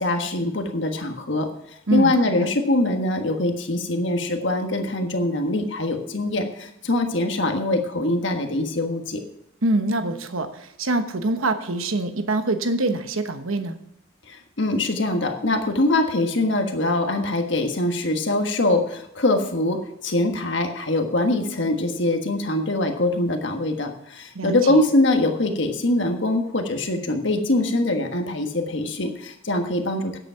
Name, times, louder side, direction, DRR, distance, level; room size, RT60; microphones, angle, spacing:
voice 1, 0.0-1.5 1.9-9.2 14.3-30.2, left 2 dB, 60° left, 4 dB, 1.5 m, -23 dB
voice 2, 9.6-13.7 24.3-24.8, right 2 dB, 85° right, 8 dB, 1.1 m, -24 dB
9.8 x 8.2 x 5.7 m, 0.76 s
head